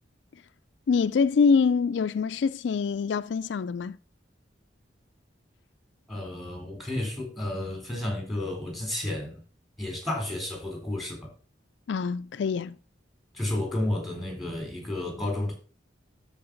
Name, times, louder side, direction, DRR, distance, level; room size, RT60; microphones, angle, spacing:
voice 1, 0.9-4.0 11.9-12.8, left 5 dB, 70° left, 0.4 m, -25 dB
voice 2, 6.1-9.4 9.8-11.3 13.3-15.6, left 1 dB, ahead, 3.8 m, -31 dB
13.0 x 4.8 x 5.1 m
head